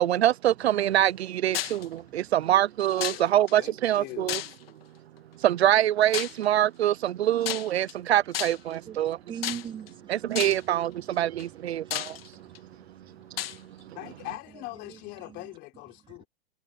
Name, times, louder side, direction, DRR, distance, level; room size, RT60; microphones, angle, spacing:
voice 1, 0.0-4.4 5.4-9.2 10.1-12.2 13.3-14.0, right 12 dB, 80° right, 0.8 m, -25 dB
sound 1, 1.5-1.9 3.0-3.5 4.3-4.8 6.1-6.4 7.4-7.9 8.3-8.7 9.4-9.9 10.3-10.7 11.4-11.5 11.9-12.6 13.4-13.6, left 12 dB, 65° left, 2.6 m, -32 dB
voice 2, 3.0-3.3 3.6-4.5 13.9-16.3, left 20 dB, 30° left, 3.9 m, -41 dB
voice 3, 9.3-10.3 11.8-12.9 13.1-14.0 14.9-15.0, right 8 dB, 15° right, 2.6 m, -42 dB
hypercardioid pair, 155°, 31 cm